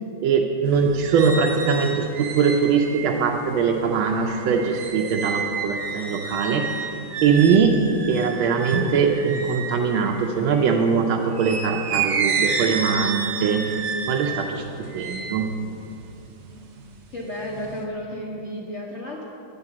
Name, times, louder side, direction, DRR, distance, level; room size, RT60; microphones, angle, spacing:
voice 1, 0.2-6.7 7.2-7.8 8.1-13.6 14.1-14.6 14.9-15.5, right 6 dB, 85° right, 1 dB, 1.4 m, -21 dB
sound 1, 0.6-10.8 11.3-16.8 17.2-17.8, right 5 dB, 70° right, 0.6 m, -30 dB
voice 2, 17.1-19.2, equal, 55° left, -3 dB, 0.8 m, -32 dB
9.5 x 3.9 x 7.1 m, 2.7 s
omnidirectional pair, 2.2 m